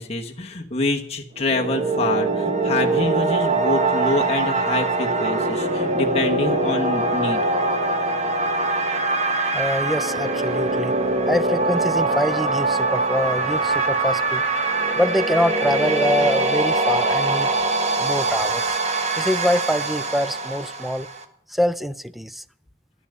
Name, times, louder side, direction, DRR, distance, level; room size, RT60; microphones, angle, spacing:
voice 1, 0.0-7.4, left 2 dB, 35° left, 1 dB, 1.1 m, -26 dB
sound 1, 1.4-21.2, right 2 dB, 40° right, 1.2 m, -23 dB
voice 2, 9.5-10.9 11.2-14.4 15.0-17.5 18.0-18.8 19.1-21.1 21.5-22.4, equal, ahead, 14 dB, 0.4 m, -24 dB
11.5 x 7.1 x 8.7 m, 0.69 s
head